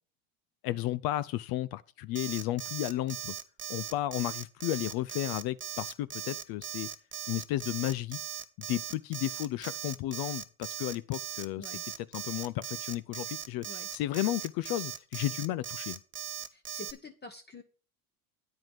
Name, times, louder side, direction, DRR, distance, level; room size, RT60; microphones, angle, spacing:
voice 1, 0.6-3.4 3.7-6.9 7.3-8.2 8.7-11.7 12.1-16.0, left 15 dB, 55° left, 0.5 m, -33 dB
Alarm, 2.2-16.9, right 10 dB, 25° right, 0.8 m, -39 dB
voice 2, 16.5-17.6, left 3 dB, 20° left, 1.0 m, -47 dB
9.2 x 4.7 x 7.6 m
supercardioid pair, 90°, 45 cm